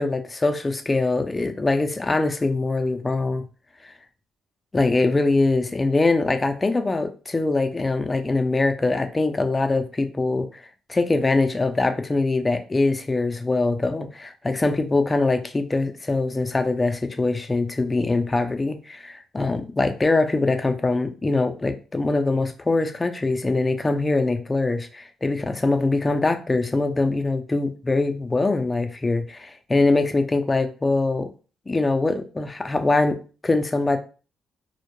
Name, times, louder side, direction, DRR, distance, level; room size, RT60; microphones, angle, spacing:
voice 1, 0.0-3.4 4.7-10.6 10.9-31.3 31.7-34.0, left 3 dB, 20° left, 8 dB, 0.4 m, -23 dB
2.1 x 2.1 x 3.0 m, 0.35 s
cardioid pair, 90°, 0 cm